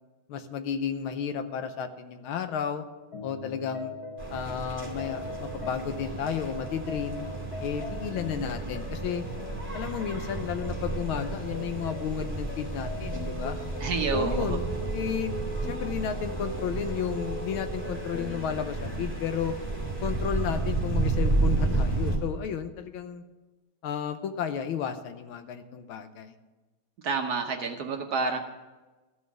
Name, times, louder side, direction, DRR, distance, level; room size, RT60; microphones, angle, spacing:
voice 1, 0.3-2.9 3.2-4.0 4.3-7.3 7.6-9.3 9.7-13.6 14.1-19.6 20.0-23.2 23.8-26.3, left 8 dB, 85° left, 9 dB, 1.6 m, -33 dB
sound 1, 3.1-20.6, left 2 dB, 50° left, 1.6 m, -40 dB
sound 2, 4.2-22.2, right 3 dB, 5° right, 2.3 m, -32 dB
voice 2, 13.8-14.6 27.0-28.4, right 4 dB, 55° right, 4 dB, 1.2 m, -29 dB
14.0 x 5.6 x 8.0 m, 1.2 s
omnidirectional pair, 2.3 m